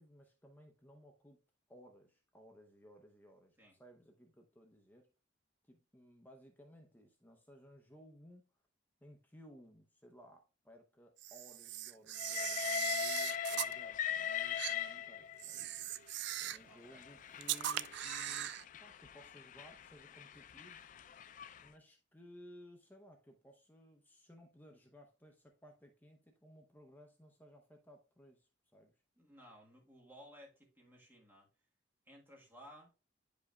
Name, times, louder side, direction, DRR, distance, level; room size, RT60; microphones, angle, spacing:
voice 1, 0.0-1.4 1.7-5.1 5.7-8.5 9.0-15.8 16.4-20.8 21.6-28.9, equal, 10° left, 0.7 m, -59 dB
Camera, 11.2-13.7 14.6-14.8 15.4-16.7 17.4-18.6, right 13 dB, 60° right, 0.3 m, -40 dB
Train, 12.2-15.6 16.4-21.7, left 9 dB, 40° left, 0.3 m, -41 dB
voice 2, 16.7-17.1 29.2-31.5 32.1-33.0, equal, 10° right, 1.4 m, -58 dB
9.6 x 5.1 x 2.3 m
head